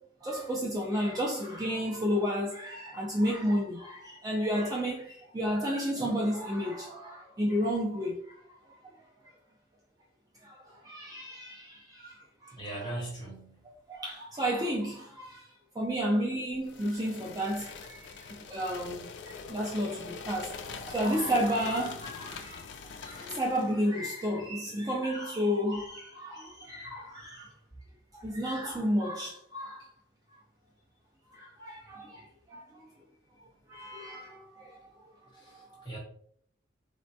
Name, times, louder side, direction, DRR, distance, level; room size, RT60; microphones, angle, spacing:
voice 1, 0.2-8.7 10.4-12.1 12.4-12.9 13.6-27.5 28.1-29.9 31.3-32.9 33.7-35.0 35.5-35.9, equal, 20° right, 0.4 m, -32 dB
voice 2, 12.5-13.5 35.3-36.0, right 1 dB, 25° left, 1.1 m, -39 dB
sound 1, 16.6-23.8, left 5 dB, 60° left, 0.3 m, -44 dB
4.1 x 2.1 x 2.7 m
head